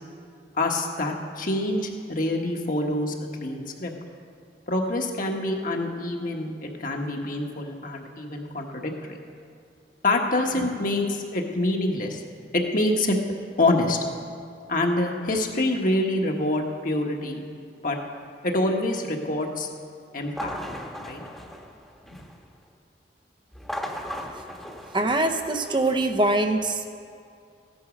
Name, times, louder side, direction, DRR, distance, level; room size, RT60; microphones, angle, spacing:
voice 1, 0.6-3.9 4.7-8.9 10.0-12.2 12.5-13.2 13.6-14.0 14.7-17.4 17.8-18.0 18.4-19.7 20.1-20.6 21.0-21.2, left 1 dB, 50° left, 1 dB, 1.4 m, -26 dB
sound 1, 20.2-22.5 23.5-26.0, equal, ahead, 1.1 m, -37 dB
voice 2, 24.9-26.8, right 2 dB, 25° right, 5 dB, 0.7 m, -23 dB
15.0 x 10.5 x 5.2 m, 2.4 s
head